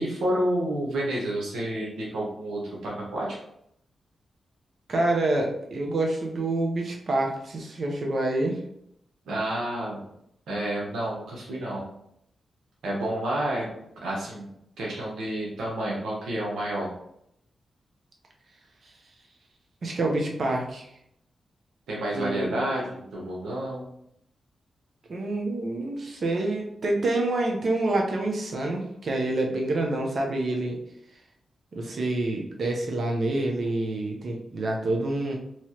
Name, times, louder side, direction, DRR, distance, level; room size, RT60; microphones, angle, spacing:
voice 1, 0.0-3.4 9.2-10.1 10.5-11.9 12.8-13.7 14.0-14.5 14.8-16.9 21.9-23.9, right 1 dB, 85° right, -4 dB, 1.0 m, -29 dB
voice 2, 4.9-8.6 19.8-20.9 22.1-22.6 25.1-30.8 31.7-35.4, right 2 dB, 65° right, 1 dB, 0.7 m, -27 dB
3.1 x 2.8 x 2.8 m, 0.76 s
supercardioid pair, 50°, 0 cm